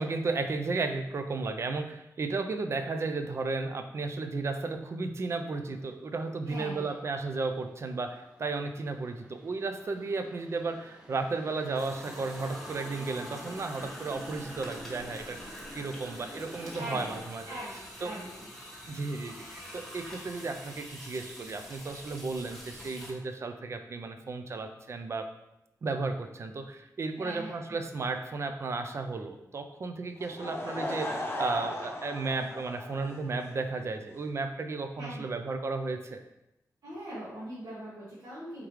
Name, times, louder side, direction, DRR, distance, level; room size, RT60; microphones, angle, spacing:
voice 1, 0.0-15.4 15.7-17.5 18.0-18.1 18.9-25.3 25.8-36.2, right 3 dB, 45° right, 7 dB, 0.4 m, -34 dB
sound 1, 5.6-17.2, equal, 15° right, 0.7 m, -48 dB
voice 2, 6.4-6.9 16.8-17.0 17.4-18.5 27.2-27.8 35.0-35.2 36.8-38.7, right 1 dB, 75° right, -10 dB, 1.4 m, -41 dB
sound 2, 11.7-23.1, equal, 5° left, 1.0 m, -46 dB
Laughter / Crowd, 30.2-33.7, left 1 dB, 40° left, 0.6 m, -37 dB
4.8 x 3.6 x 3.1 m, 0.88 s
wide cardioid pair, 180°, 6 cm